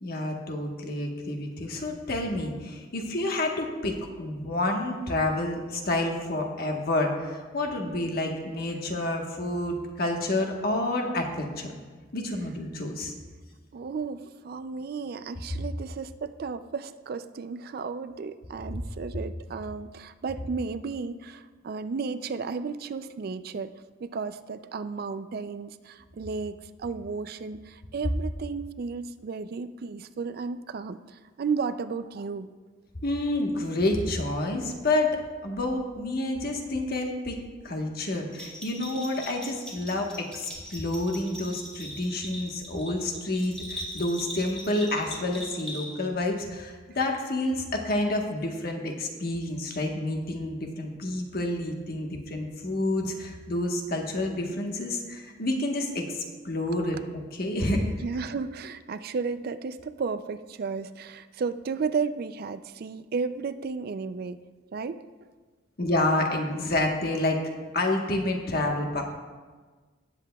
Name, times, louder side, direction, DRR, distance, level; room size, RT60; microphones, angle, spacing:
voice 1, 0.0-11.7 12.1-13.1 33.0-35.1 35.4-37.4 37.6-57.8 65.8-67.4 67.7-69.0, left 1 dB, 55° left, 2 dB, 1.3 m, -29 dB
voice 2, 13.7-23.7 24.0-32.5 38.8-39.1 57.8-64.4 64.7-65.0, right 5 dB, 55° right, 12 dB, 0.4 m, -33 dB
Bell, 38.3-46.2, equal, 5° left, 2.3 m, -41 dB
18.0 x 7.8 x 2.3 m, 1.4 s
head